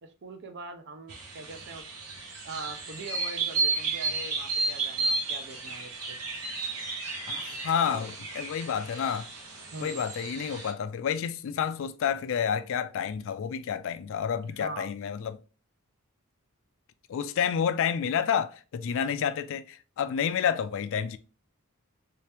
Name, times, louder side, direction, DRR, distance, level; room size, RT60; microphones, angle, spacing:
voice 1, 0.0-1.9 2.4-6.2 7.5-8.1 9.7-10.0 14.4-14.9, right 3 dB, 55° right, 0.5 m, -42 dB
sound 1, 1.1-10.7, right 3 dB, 90° right, 1.0 m, -33 dB
voice 2, 7.3-9.3 9.8-15.4 17.1-21.2, left 7 dB, 60° left, 0.3 m, -29 dB
3.4 x 2.9 x 3.3 m
head